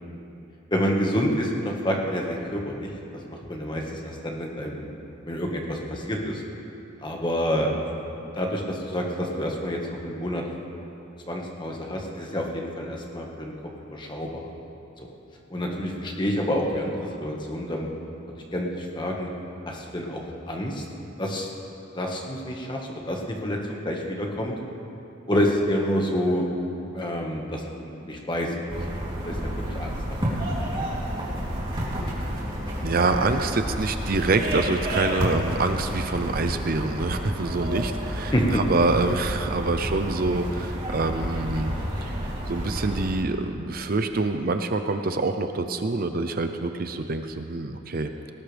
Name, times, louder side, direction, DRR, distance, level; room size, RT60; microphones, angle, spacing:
voice 1, 0.7-2.9 3.3-4.9 5.2-6.4 7.0-7.9 8.3-10.4 11.3-13.5 13.9-14.5 15.5-17.9 18.5-19.3 19.7-20.8 21.2-21.5 21.9-23.6 23.8-24.5 25.3-26.5 26.9-30.3 38.3-38.6, equal, 25° left, 0 dB, 1.6 m, -28 dB
sound 1, 28.7-43.1, equal, 25° right, 3.0 m, -30 dB
voice 2, 32.8-41.7 42.0-42.1 42.5-48.3, right 3 dB, 45° right, 7 dB, 0.6 m, -26 dB
19.0 x 18.5 x 3.5 m, 2.9 s
head